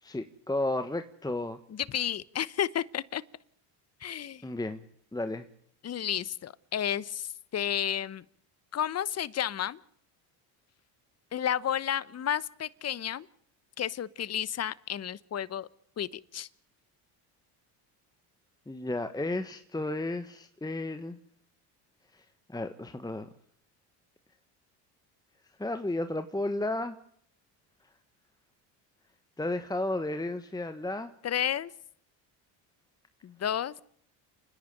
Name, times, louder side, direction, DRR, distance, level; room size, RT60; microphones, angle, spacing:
voice 1, 0.0-1.6 4.4-4.8 5.1-5.5 18.7-21.2 22.1-22.2 22.5-23.3 25.6-27.0 29.4-31.1, left 2 dB, 10° left, 8 dB, 1.4 m, -33 dB
voice 2, 1.9-3.2 4.0-4.4 5.8-8.2 8.7-9.8 11.3-13.3 13.8-15.7 16.0-16.5 31.2-31.7 33.2-33.7, left 10 dB, 35° left, 20 dB, 0.9 m, -32 dB
29.5 x 10.5 x 9.1 m, 0.64 s
supercardioid pair, 80°, 46 cm